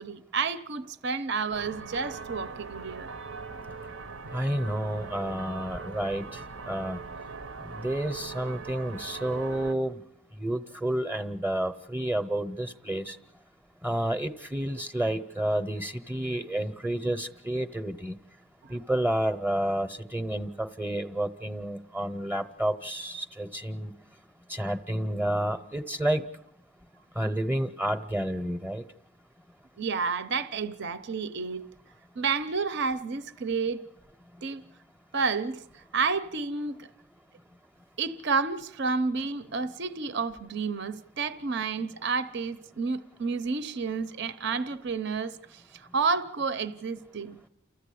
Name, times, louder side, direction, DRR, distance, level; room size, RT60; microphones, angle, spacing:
voice 1, 0.0-3.1 18.6-18.8 29.8-31.6 32.2-33.9 34.4-34.6 35.1-36.9 38.0-47.4, right 4 dB, 60° right, 0.8 m, -30 dB
sound 1, 1.5-9.7, right 4 dB, 85° right, 1.0 m, -41 dB
voice 2, 4.3-6.4 6.7-7.0 7.6-10.0 10.4-13.2 13.8-18.2 18.7-23.9 24.5-26.2 27.2-28.8, right 1 dB, 10° right, 0.8 m, -30 dB
30.0 x 14.0 x 8.5 m
head